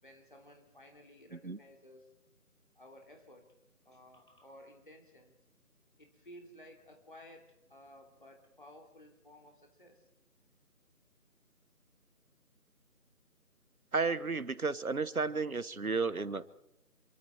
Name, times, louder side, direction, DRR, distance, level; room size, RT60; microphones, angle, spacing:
voice 1, 0.0-2.1 2.7-3.5 3.8-5.3 6.0-10.1, left 1 dB, 35° left, 2 dB, 3.2 m, -56 dB
voice 2, 13.9-16.4, right 4 dB, 65° right, 16 dB, 1.3 m, -32 dB
28.0 x 23.0 x 4.6 m, 0.86 s
figure-of-eight pair, 175°, 45 cm